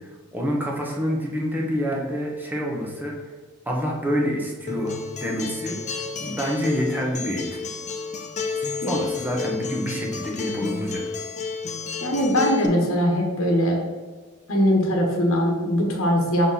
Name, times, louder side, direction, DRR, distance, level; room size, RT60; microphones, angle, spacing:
voice 1, 0.0-3.2 3.7-7.6 8.6-11.0, equal, 10° right, -2 dB, 1.0 m, -27 dB
Acoustic guitar, 4.7-12.7, left 4 dB, 35° left, 0.6 m, -31 dB
voice 2, 12.0-13.8 14.5-16.5, equal, 75° left, -1 dB, 1.2 m, -21 dB
5.6 x 4.3 x 4.2 m, 1.4 s
head